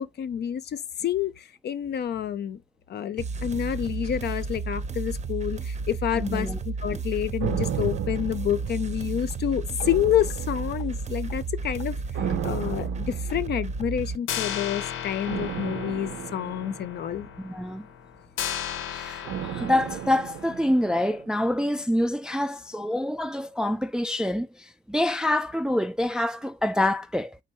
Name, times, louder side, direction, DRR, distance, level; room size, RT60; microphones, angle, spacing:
voice 1, 0.0-1.3 1.6-2.6 2.9-12.0 12.4-17.3, left 10 dB, 55° left, 0.6 m, -28 dB
sound 1, 3.2-14.2, right 4 dB, 35° right, 0.7 m, -32 dB
voice 2, 6.1-6.6 6.9-7.0 17.4-17.9 18.9-27.4, left 1 dB, 5° right, 0.3 m, -26 dB
sound 2, 7.4-9.3 9.8-11.1 12.1-13.9 15.2-17.6 19.2-21.4 21.7-21.8, right 9 dB, 75° right, 0.7 m, -34 dB
sound 3, 9.3-9.4 9.8-9.9 10.3-10.5 10.8-10.9 11.3-11.4 11.8-11.9 12.3-12.4 12.8-12.9 13.3-13.4 13.8-13.9 14.3-21.0, left 9 dB, 90° left, 0.7 m, -36 dB
4.5 x 3.9 x 3.0 m
cardioid pair, 90°, 20 cm